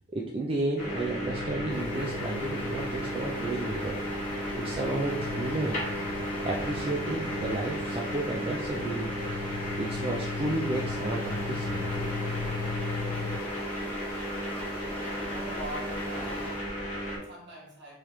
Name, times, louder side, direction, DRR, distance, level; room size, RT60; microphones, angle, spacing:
voice 1, 0.1-4.0 4.5-5.7 6.4-9.1 9.8-12.1, right 2 dB, 25° right, -1 dB, 0.3 m, -32 dB
sound 1, 0.8-17.2, equal, 35° left, 1.1 m, -34 dB
sound 2, 1.3-13.4, left 5 dB, 90° left, 0.3 m, -39 dB
Stream, 1.7-16.8, left 2 dB, 5° left, 0.8 m, -42 dB
voice 2, 15.1-18.0, right 1 dB, 55° right, -4 dB, 1.5 m, -43 dB
3.2 x 3.0 x 3.7 m, 0.66 s
head